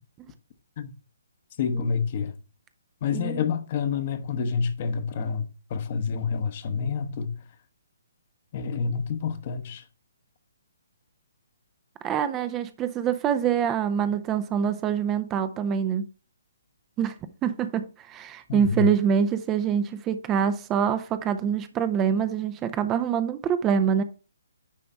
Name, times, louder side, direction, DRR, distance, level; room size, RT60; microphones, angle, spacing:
voice 1, 1.6-2.3 3.0-7.4 8.5-9.8 18.5-18.9, left 6 dB, 40° left, 1.0 m, -28 dB
voice 2, 3.1-3.4 12.0-16.0 17.0-17.1 17.4-24.0, right 8 dB, 20° right, 0.6 m, -25 dB
10.0 x 3.4 x 5.2 m
figure-of-eight pair, 135°, 0 cm